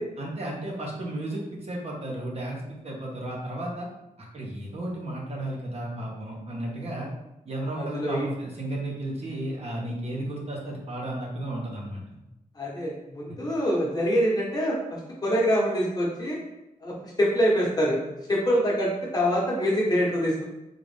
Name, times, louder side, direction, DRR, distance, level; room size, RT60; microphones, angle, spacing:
voice 1, 0.2-3.9 4.2-7.1 7.5-12.0, right 1 dB, 45° right, -2 dB, 0.9 m, -33 dB
voice 2, 7.7-8.2 12.5-16.4 16.8-18.0 18.3-20.4, equal, 25° left, -5 dB, 1.0 m, -25 dB
3.8 x 2.4 x 3.3 m, 0.92 s
wide cardioid pair, 145°, 15 cm